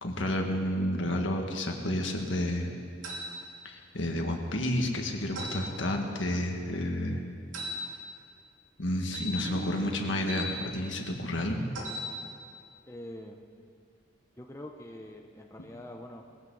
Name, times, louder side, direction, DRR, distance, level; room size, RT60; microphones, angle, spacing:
voice 1, 0.0-2.7 3.7-7.2 8.8-11.6, left 1 dB, 70° left, 2 dB, 1.7 m, -30 dB
sound 1, 3.0-3.3 5.4-5.6 7.5-7.8 9.1-10.5 11.7-12.1, equal, 70° right, 3.0 m, -37 dB
voice 2, 12.9-13.4 14.4-16.3, left 1 dB, 15° left, 2 dB, 0.7 m, -44 dB
20.0 x 15.0 x 4.0 m, 2.3 s
head